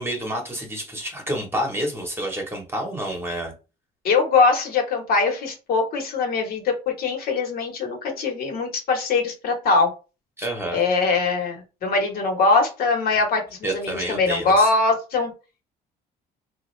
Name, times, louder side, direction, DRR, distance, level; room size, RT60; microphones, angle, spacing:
voice 1, 0.0-3.5 10.4-10.8 13.6-14.7, right 1 dB, 15° right, 1.1 m, -29 dB
voice 2, 4.0-9.9 10.7-15.3, left 3 dB, 60° left, 1.3 m, -22 dB
3.6 x 2.4 x 3.2 m
cardioid pair, 110°, 17 cm